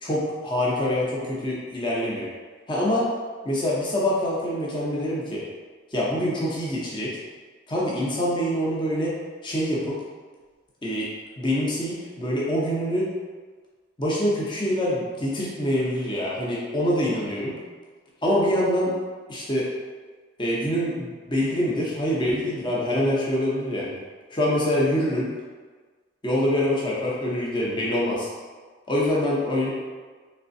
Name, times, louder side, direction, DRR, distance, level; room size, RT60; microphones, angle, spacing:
voice 1, 0.0-2.3 2.7-3.0 3.4-5.4 5.9-7.1 7.7-9.1 9.4-9.8 10.8-11.0 11.4-13.0 14.0-17.5 18.2-18.9 19.3-19.6 20.4-23.9 24.3-25.3 26.2-28.3 28.9-29.7, equal, 25° left, -6 dB, 0.6 m, -25 dB
3.5 x 3.2 x 2.6 m, 1.4 s
head